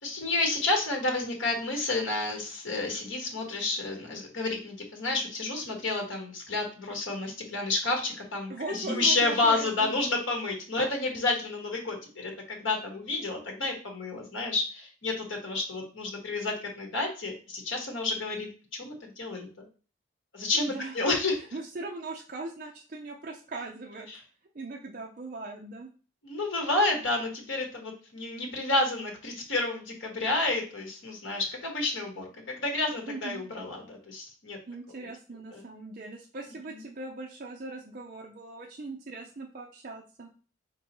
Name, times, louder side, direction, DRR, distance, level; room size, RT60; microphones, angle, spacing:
voice 1, 0.0-19.5 20.3-21.4 24.1-24.2 26.2-34.6 35.5-35.6 36.7-36.8, left 2 dB, 70° left, 2 dB, 1.3 m, -30 dB
voice 2, 8.5-9.9 20.5-21.0 21.5-24.1 24.5-25.9 33.1-33.4 34.7-40.3, right 3 dB, 40° right, -1 dB, 0.5 m, -39 dB
4.7 x 3.8 x 2.9 m, 0.37 s
head